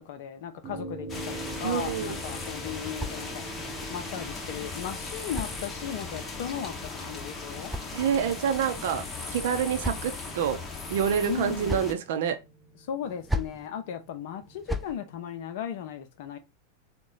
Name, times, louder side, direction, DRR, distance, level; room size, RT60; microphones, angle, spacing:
voice 1, 0.0-3.5 3.9-7.7 11.2-11.9 12.8-16.4, left 9 dB, 50° left, 0.6 m, -36 dB
sound 1, 0.6-15.2, right 2 dB, 25° right, 0.9 m, -45 dB
sound 2, 1.1-11.9, left 4 dB, 20° left, 0.9 m, -38 dB
voice 2, 1.6-2.1 7.9-9.0 9.3-10.6 10.9-12.4, right 8 dB, 55° right, 0.7 m, -27 dB
sound 3, 5.2-6.2 7.2-8.5 9.3-10.4 11.3-12.0 13.0-13.7 14.4-15.0, equal, 5° right, 0.4 m, -37 dB
4.0 x 2.3 x 3.7 m
figure-of-eight pair, 90°, 0 cm